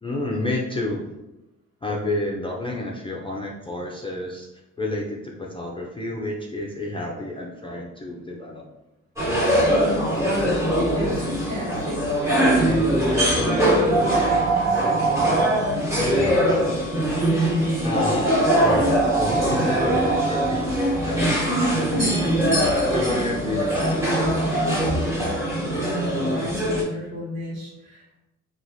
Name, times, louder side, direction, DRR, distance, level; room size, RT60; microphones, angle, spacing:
voice 1, 0.0-1.1 1.8-4.5 4.8-8.6 17.8-18.8 19.1-22.5 22.9-25.2, left 2 dB, 15° left, -2 dB, 0.4 m, -30 dB
sound 1, 9.2-26.8, right 1 dB, 10° right, 1.2 m, -21 dB
voice 2, 9.7-12.0 12.5-15.3 25.8-28.0, equal, 50° right, -5 dB, 1.4 m, -32 dB
2.9 x 2.3 x 2.6 m, 0.97 s
cardioid pair, 70°, 33 cm